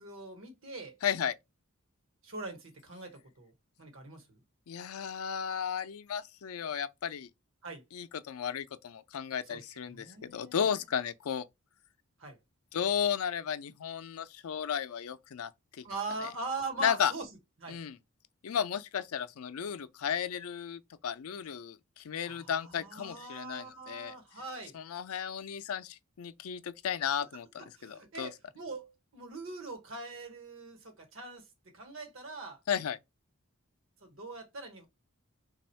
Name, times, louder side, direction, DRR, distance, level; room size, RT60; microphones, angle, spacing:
voice 1, 0.0-1.0 2.2-4.4 7.6-7.8 9.5-9.6 9.9-10.8 12.2-12.4 15.8-17.3 17.6-17.8 22.2-24.7 27.6-31.5 31.7-32.6 34.0-34.9, right 3 dB, 65° right, 1.1 m, -42 dB
voice 2, 1.0-1.4 4.7-7.3 7.9-11.5 12.7-15.5 15.8-15.9 16.8-17.1 17.7-18.0 18.4-24.2 24.7-28.3 32.7-33.0, left 8 dB, 85° left, 0.4 m, -34 dB
3.4 x 2.3 x 4.3 m
head